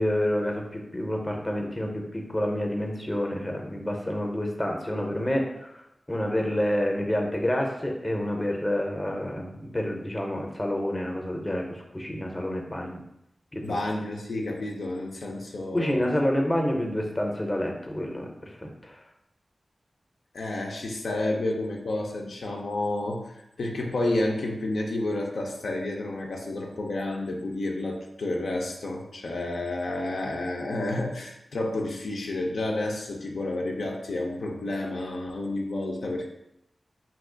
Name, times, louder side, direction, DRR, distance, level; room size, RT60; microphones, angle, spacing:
voice 1, 0.0-5.7 6.1-13.0 13.5-13.8 15.7-19.0, left 1 dB, 20° left, 2 dB, 0.6 m, -28 dB
voice 2, 13.6-16.0 20.3-36.3, left 2 dB, 90° left, 0 dB, 0.4 m, -30 dB
2.8 x 2.3 x 3.7 m, 0.81 s
wide cardioid pair, 65°, 0 cm